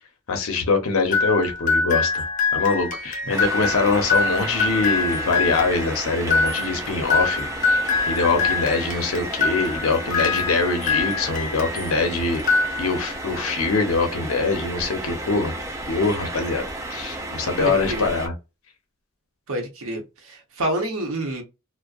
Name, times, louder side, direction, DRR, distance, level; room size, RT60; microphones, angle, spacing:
voice 1, 0.3-2.2 2.5-7.8 8.1-12.4 12.8-15.5 15.9-16.6 16.9-18.3, left 4 dB, 75° left, 0.6 m, -23 dB
sound 1, 1.1-12.0 12.4-13.2, left 4 dB, 35° left, 0.5 m, -24 dB
sound 2, 3.3-18.3, right 2 dB, 15° right, 0.3 m, -33 dB
voice 2, 17.6-18.0 19.5-21.4, right 1 dB, 75° right, 0.8 m, -28 dB
2.6 x 2.1 x 2.3 m
head